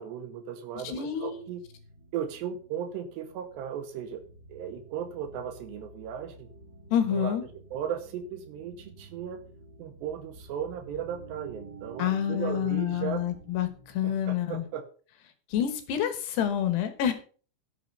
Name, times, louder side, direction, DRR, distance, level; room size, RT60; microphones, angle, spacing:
voice 1, 0.0-1.6 2.1-4.2 4.5-6.5 7.1-7.3 7.7-9.4 9.8-13.2 14.0-14.8, right 8 dB, 75° right, 8 dB, 2.6 m, -36 dB
sound 1, 0.7-14.6, right 3 dB, 25° right, 4.4 m, -51 dB
voice 2, 0.8-1.4 6.9-7.4 12.0-14.7 15.5-17.1, left 9 dB, 70° left, 8 dB, 2.7 m, -28 dB
12.0 x 6.8 x 5.3 m, 0.41 s
omnidirectional pair, 6.0 m